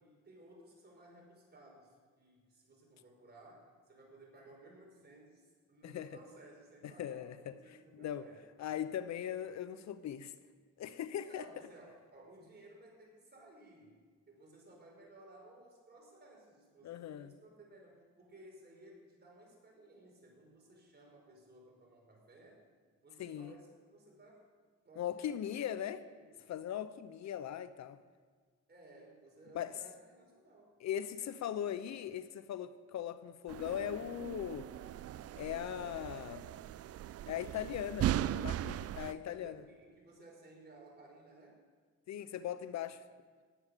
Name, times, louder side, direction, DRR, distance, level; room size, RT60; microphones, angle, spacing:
voice 1, 0.0-8.5 11.2-22.6 23.0-24.5 24.8-26.5 28.7-30.7 38.9-41.7 42.6-42.8, right 1 dB, 35° right, 5.2 m, -58 dB
voice 2, 6.8-7.5 8.0-8.3 8.6-10.3 10.8-11.5 16.8-17.3 23.2-23.5 25.0-26.0 26.5-28.0 29.5-29.7 30.8-34.7 35.3-36.5 37.3-39.6 42.1-43.0, left 10 dB, 65° left, 0.7 m, -39 dB
sound 1, 33.5-39.1, right 12 dB, 55° right, 0.4 m, -38 dB
18.5 x 8.7 x 6.7 m
cardioid pair, 90°, 30 cm